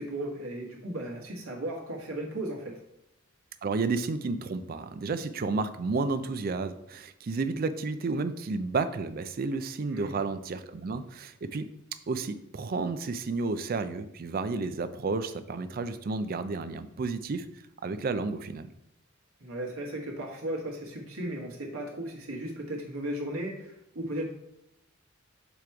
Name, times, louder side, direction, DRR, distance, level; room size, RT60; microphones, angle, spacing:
voice 1, 0.0-2.8 9.9-10.2 19.4-24.3, right 1 dB, 90° right, -1 dB, 1.5 m, -36 dB
voice 2, 3.6-11.7 12.1-17.5 17.8-18.7, right 3 dB, 45° right, 11 dB, 0.4 m, -31 dB
6.9 x 3.0 x 4.7 m, 0.81 s
head